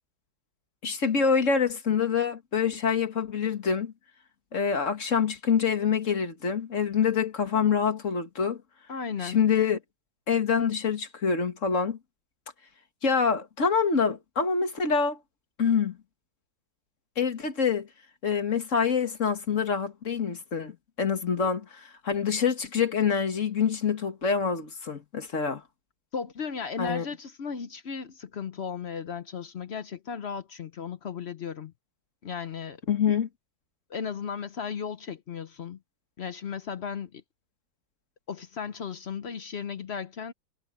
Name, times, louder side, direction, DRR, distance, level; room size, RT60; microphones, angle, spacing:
voice 1, 0.8-3.9 4.5-8.6 9.2-9.8 10.3-12.0 13.0-15.2 15.6-16.0 17.2-17.9 18.2-25.6 26.8-27.1 32.9-33.3, left 6 dB, 40° left, 2.1 m, -26 dB
voice 2, 8.9-9.4 26.1-31.7 32.2-32.8 33.9-35.8 36.2-37.2 38.3-40.3, left 6 dB, 60° left, 0.7 m, -35 dB
omnidirectional pair, 2.0 m